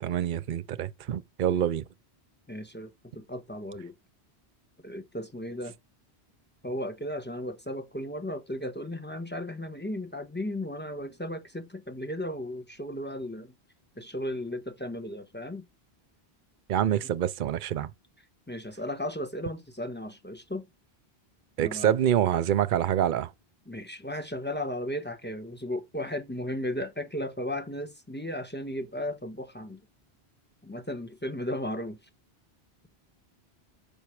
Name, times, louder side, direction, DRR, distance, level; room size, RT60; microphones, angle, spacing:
voice 1, 0.0-1.8 16.7-17.9 21.6-23.3, right 10 dB, 55° right, 0.7 m, -26 dB
voice 2, 2.5-3.9 4.8-5.7 6.6-13.5 14.0-15.6 17.0-17.1 18.5-20.7 21.6-21.9 23.7-29.8 30.6-32.0, left 1 dB, 10° left, 1.3 m, -35 dB
6.9 x 5.4 x 4.8 m
omnidirectional pair, 1.1 m